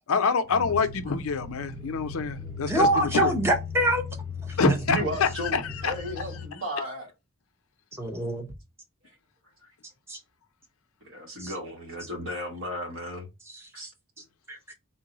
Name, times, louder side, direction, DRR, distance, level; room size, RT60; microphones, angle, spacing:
voice 1, 0.1-3.3 4.6-5.9, left 5 dB, 70° left, 0.5 m, -26 dB
sound 1, 0.6-6.5, left 5 dB, 85° right, 1.1 m, -38 dB
voice 2, 2.4-4.0 4.5-4.8 8.0-8.5 10.1-10.2 11.4-11.5 13.5-13.6 14.5-14.6, right 1 dB, 10° right, 0.6 m, -25 dB
voice 3, 4.9-7.1 11.1-13.3 13.7-13.9, equal, 60° right, 1.2 m, -34 dB
3.8 x 2.0 x 3.8 m
head